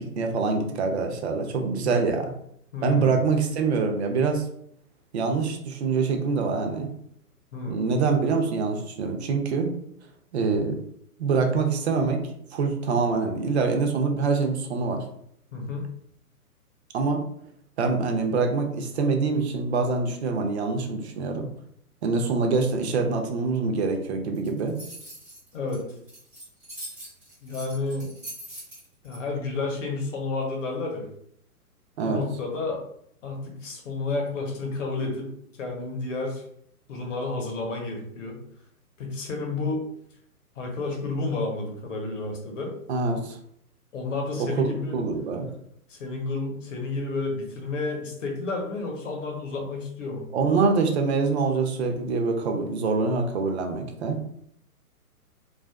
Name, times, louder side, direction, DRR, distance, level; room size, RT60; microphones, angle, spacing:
voice 1, 0.0-2.3 2.8-4.5 5.1-6.9 7.7-9.7 10.3-10.8 11.2-12.2 12.5-15.0 16.9-17.2 17.8-21.5 22.0-24.7 32.0-32.2 42.9-43.4 44.4-45.5 50.3-54.2, right 4 dB, 45° right, 4 dB, 0.5 m, -25 dB
voice 2, 2.7-3.1 7.5-7.8 15.5-15.9 25.5-25.8 27.4-28.1 29.0-31.1 32.0-32.8 33.2-35.3 35.6-36.4 36.9-38.4 39.0-39.8 40.6-42.7 43.9-45.0 45.9-50.2, left 3 dB, 55° left, 1 dB, 0.9 m, -31 dB
sound 1, 24.3-29.2, right 1 dB, 5° right, 0.6 m, -42 dB
2.4 x 2.3 x 2.2 m, 0.70 s
figure-of-eight pair, 130°, 46 cm